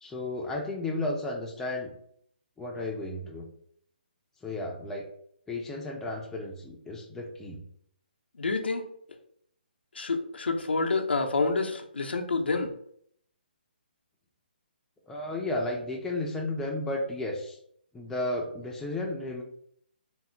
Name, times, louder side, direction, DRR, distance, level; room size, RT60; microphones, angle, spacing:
voice 1, 0.0-1.9 2.6-3.5 4.4-5.1 5.5-7.6 15.1-17.6 17.9-19.4, left 2 dB, 5° left, -1 dB, 0.4 m, -33 dB
voice 2, 8.4-8.9 9.9-12.7, left 3 dB, 85° left, 4 dB, 0.6 m, -28 dB
3.5 x 2.0 x 4.3 m, 0.67 s
hypercardioid pair, 150°, 6 cm